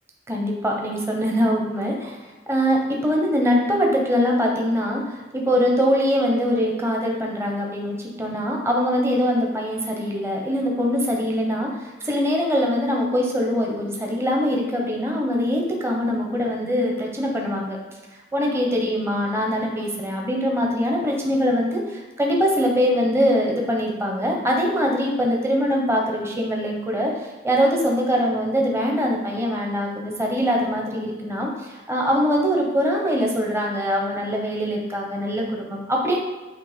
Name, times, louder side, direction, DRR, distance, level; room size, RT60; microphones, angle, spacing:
voice 1, 0.3-2.2 2.5-17.8 18.3-36.2, equal, 15° right, -1 dB, 0.9 m, -23 dB
8.4 x 2.9 x 5.1 m, 1.2 s
head